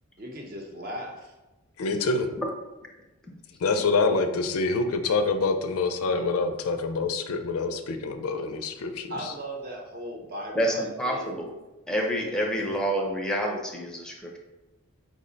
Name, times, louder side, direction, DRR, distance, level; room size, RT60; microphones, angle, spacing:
voice 1, 0.2-1.3 9.1-11.3 12.6-12.7, right 1 dB, 40° right, 0 dB, 0.7 m, -37 dB
voice 2, 1.8-2.3 3.6-9.3, left 3 dB, 75° left, 7 dB, 0.4 m, -26 dB
voice 3, 10.5-11.5 11.9-14.4, equal, 5° left, -1 dB, 0.5 m, -28 dB
4.9 x 2.1 x 3.8 m, 1.1 s
head